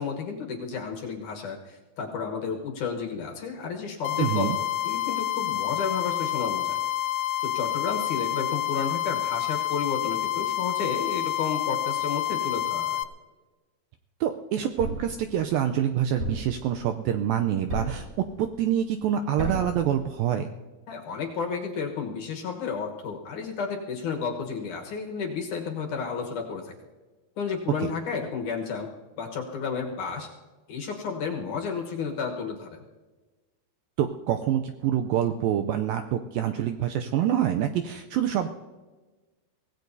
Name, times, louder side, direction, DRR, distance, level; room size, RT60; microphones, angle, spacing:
voice 1, 0.0-6.8 7.4-13.0 20.9-26.7 27.4-28.9 29.2-30.3 30.7-32.8, left 5 dB, 65° left, 1 dB, 2.3 m, -32 dB
sound 1, 4.0-13.0, left 12 dB, 85° left, 2.8 m, -28 dB
voice 2, 4.2-4.6 14.2-18.1 18.4-20.5 27.8-27.9 34.0-38.5, right 10 dB, 85° right, 6 dB, 2.1 m, -26 dB
Thump thud, 14.8-15.2 16.2-16.6 17.7-18.1 19.4-19.8, right 1 dB, 45° right, 7.8 m, -31 dB
24.5 x 17.5 x 2.7 m, 1.3 s
omnidirectional pair, 4.7 m